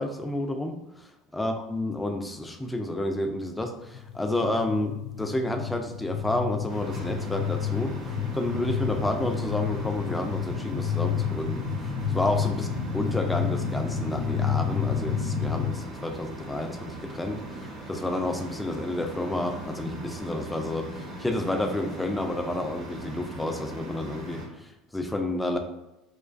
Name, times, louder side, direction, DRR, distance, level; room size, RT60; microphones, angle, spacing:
voice 1, 0.0-12.7 12.9-25.6, left 1 dB, 10° left, 4 dB, 0.3 m, -30 dB
sound 1, 3.8-15.7, left 7 dB, 80° left, 0.6 m, -30 dB
sound 2, 6.7-24.5, right 1 dB, 55° right, 1.0 m, -40 dB
2.4 x 2.2 x 2.4 m, 0.90 s
hypercardioid pair, 80°, 0 cm